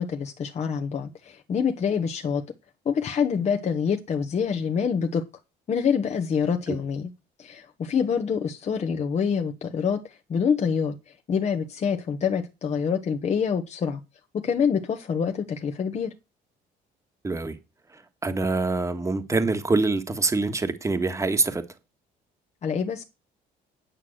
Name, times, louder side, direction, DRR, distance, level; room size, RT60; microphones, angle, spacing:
voice 1, 0.0-2.4 2.8-5.2 5.7-7.1 7.4-14.0 14.3-16.1 22.6-23.0, left 6 dB, 40° left, 1.3 m, -26 dB
voice 2, 17.2-17.6 17.9-21.6, right 3 dB, 20° right, 1.5 m, -25 dB
9.7 x 6.0 x 7.9 m
cardioid pair, 110°, 17 cm